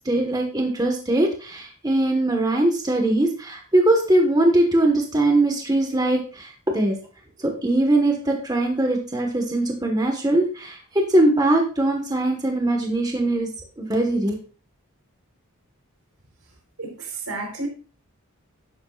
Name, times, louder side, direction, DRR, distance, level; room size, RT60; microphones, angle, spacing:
voice 1, 0.0-7.0 7.4-13.5 13.8-14.4, right 1 dB, 20° right, 2 dB, 1.5 m, -21 dB
voice 2, 16.8-17.7, right 3 dB, 80° right, 2 dB, 4.3 m, -31 dB
11.5 x 11.0 x 2.5 m, 0.36 s
head